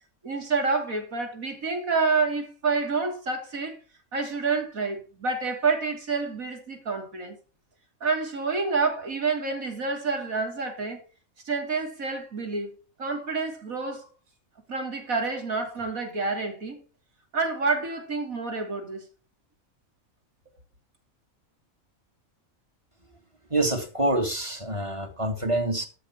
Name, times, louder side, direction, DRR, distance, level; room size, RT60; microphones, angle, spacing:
voice 1, 0.2-3.7 4.1-7.4 8.0-11.0 11.4-12.7 13.0-14.1 14.7-16.8 17.3-19.0, right 4 dB, 75° right, 3.4 m, -28 dB
voice 2, 23.5-25.9, right 1 dB, 20° right, 1.8 m, -26 dB
12.5 x 6.5 x 5.9 m
omnidirectional pair, 1.5 m